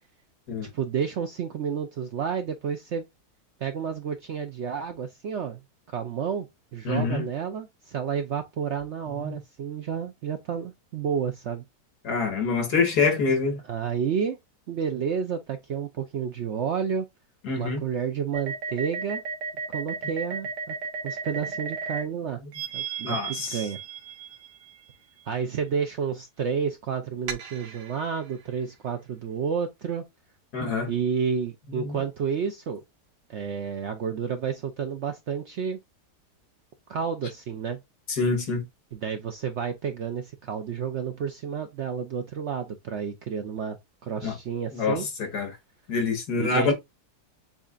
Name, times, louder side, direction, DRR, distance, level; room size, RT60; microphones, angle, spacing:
voice 1, 0.7-3.0 3.6-5.6 5.9-6.5 6.7-11.6 13.7-14.4 14.7-17.1 17.5-19.2 19.7-20.7 21.0-22.4 22.7-23.8 25.3-30.1 30.9-32.8 33.3-35.8 36.9-37.8 38.9-43.8 44.0-45.1 46.4-46.7, right 7 dB, 65° right, 0.7 m, -30 dB
voice 2, 6.9-7.3 9.1-9.4 12.0-13.6 17.4-17.8 23.0-23.6 30.5-30.9 31.7-32.0 38.1-38.7 44.2-44.3 44.7-45.5 45.9-46.7, left 4 dB, 75° left, 2.0 m, -26 dB
sound 1, 18.3-22.0 22.5-24.7 27.3-28.3, right 5 dB, 80° right, 1.5 m, -34 dB
7.3 x 2.8 x 2.4 m
omnidirectional pair, 1.7 m